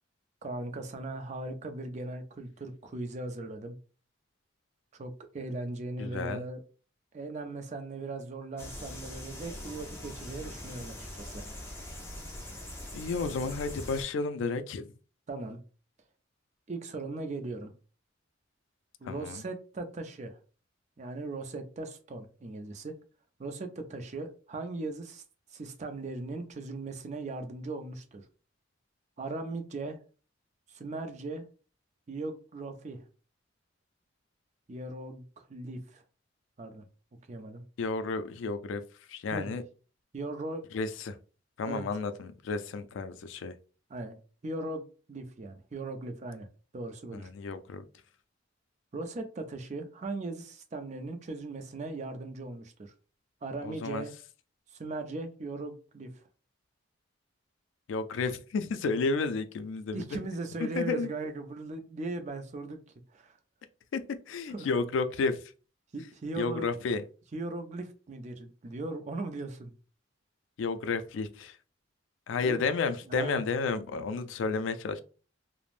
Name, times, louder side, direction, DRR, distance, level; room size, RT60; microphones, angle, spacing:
voice 1, 0.4-3.8 4.9-6.6 7.1-11.4 15.3-15.6 16.7-17.7 19.0-20.4 21.0-23.0 23.4-25.2 25.5-28.3 29.2-30.0 30.7-31.4 32.1-33.0 34.7-36.0 36.6-36.9 37.3-37.6 39.3-39.5 40.1-40.6 41.6-41.9 43.9-44.2 44.4-46.5 46.7-47.3 48.9-52.9 53.4-54.1 54.7-56.1 59.9-62.8 63.1-63.3 64.5-64.7 65.9-66.7 67.3-69.7 72.4-72.6 73.1-73.4, right 2 dB, 35° right, 0.4 m, -38 dB
voice 2, 6.0-6.5 12.9-14.9 19.0-19.4 37.8-38.8 39.1-39.6 40.7-41.1 41.6-43.5 47.1-47.8 53.6-54.0 57.9-60.0 60.8-61.1 63.9-64.0 64.3-65.4 66.4-67.0 70.6-71.6 72.3-75.0, left 4 dB, 75° left, 0.3 m, -31 dB
sound 1, 8.6-14.0, left 1 dB, 10° left, 0.6 m, -42 dB
3.2 x 2.0 x 2.4 m
head